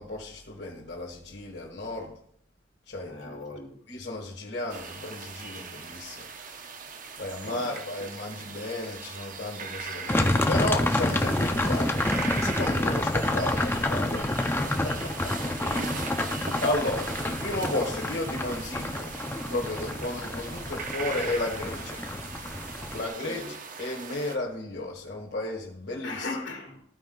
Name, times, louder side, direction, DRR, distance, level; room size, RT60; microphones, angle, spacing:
voice 1, 0.0-2.2 2.9-3.3 3.9-6.3 7.2-11.9 12.3-15.3 15.6-16.0 16.6-19.1 19.5-22.0 22.9-26.3, left 2 dB, 60° left, 1.5 m, -33 dB
voice 2, 3.0-3.8 7.4-7.7 11.1-11.8 15.6-16.2 22.9-23.5 26.0-26.8, left 2 dB, 75° left, 2.1 m, -39 dB
sound 1, 4.7-24.4, right 5 dB, 45° right, 0.8 m, -40 dB
sound 2, 10.1-23.1, left 1 dB, 10° left, 0.6 m, -28 dB
14.5 x 4.8 x 3.8 m
head